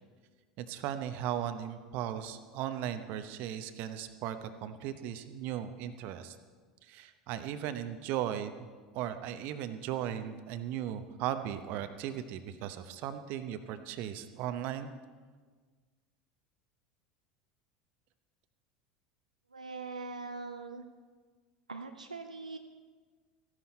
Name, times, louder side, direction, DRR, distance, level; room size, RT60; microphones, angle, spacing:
voice 1, 0.6-6.4 6.8-8.5 8.9-14.9, right 10 dB, 55° right, 10 dB, 0.9 m, -37 dB
voice 2, 19.5-20.8 21.7-22.6, right 3 dB, 85° right, 6 dB, 0.6 m, -42 dB
15.0 x 11.0 x 4.3 m, 1.5 s
figure-of-eight pair, 75°, 4 cm